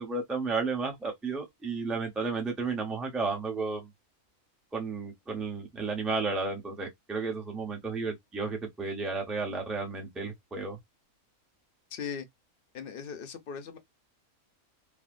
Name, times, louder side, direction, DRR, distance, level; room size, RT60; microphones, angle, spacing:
voice 1, 0.0-3.9 4.7-10.8, right 4 dB, ahead, 0.4 m, -33 dB
voice 2, 11.9-12.3 12.7-13.8, left 6 dB, 60° left, 0.6 m, -38 dB
3.4 x 2.1 x 2.4 m
omnidirectional pair, 1.5 m